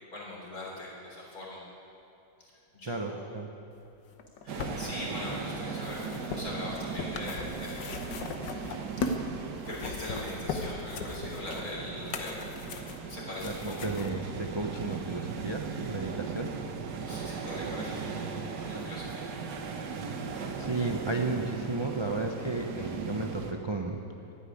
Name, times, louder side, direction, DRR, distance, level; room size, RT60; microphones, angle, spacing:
voice 1, 0.1-1.6 2.4-3.3 4.4-8.1 8.4-8.7 9.6-12.5 13.0-13.9 17.1-19.3, left 1 dB, 55° left, -4 dB, 4.0 m, -41 dB
voice 2, 2.9-3.5 13.4-16.5 20.6-24.0, right 3 dB, 45° right, 2 dB, 0.3 m, -33 dB
sound 1, 4.1-9.3 9.6-14.1 14.9-15.0, left 4 dB, 75° left, 1.6 m, -38 dB
sound 2, 4.5-23.5, right 5 dB, 70° right, 1.6 m, -38 dB
12.0 x 9.8 x 9.8 m, 2.8 s
omnidirectional pair, 1.9 m